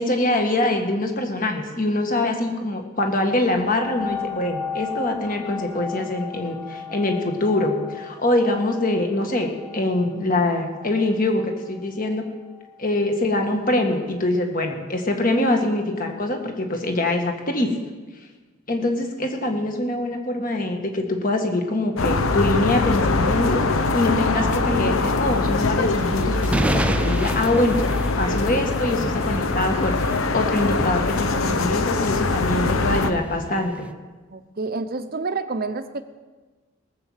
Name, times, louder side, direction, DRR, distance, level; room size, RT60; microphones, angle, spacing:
voice 1, 0.0-12.3 12.8-17.7 18.7-23.6 23.9-27.8 28.2-33.9, left 1 dB, 40° left, 4 dB, 1.7 m, -24 dB
sound 1, 3.5-12.8 13.4-13.5, left 7 dB, 10° left, 1.0 m, -36 dB
sound 2, 22.0-33.1, left 3 dB, 80° left, 0.9 m, -23 dB
sound 3, 25.3-33.9, right 1 dB, 5° right, 0.4 m, -31 dB
voice 2, 34.3-36.0, right 3 dB, 45° right, 10 dB, 0.8 m, -29 dB
18.5 x 7.6 x 7.4 m, 1.3 s
head